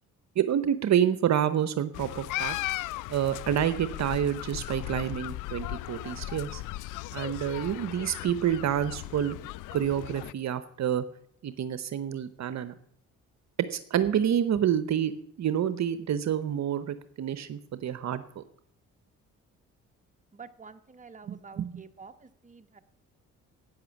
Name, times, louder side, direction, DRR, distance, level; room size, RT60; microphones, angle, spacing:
voice 1, 0.4-2.6 3.1-6.6 7.1-9.4 9.7-11.0 11.4-12.7 13.7-15.1 15.4-18.4 21.3-21.7, right 9 dB, 60° right, 13 dB, 0.9 m, -28 dB
sound 1, 1.9-10.3, left 17 dB, 75° left, 0.5 m, -37 dB
voice 2, 20.3-22.8, right 5 dB, 25° right, 8 dB, 1.2 m, -49 dB
11.5 x 9.4 x 7.1 m, 0.70 s
supercardioid pair, 65°, 32 cm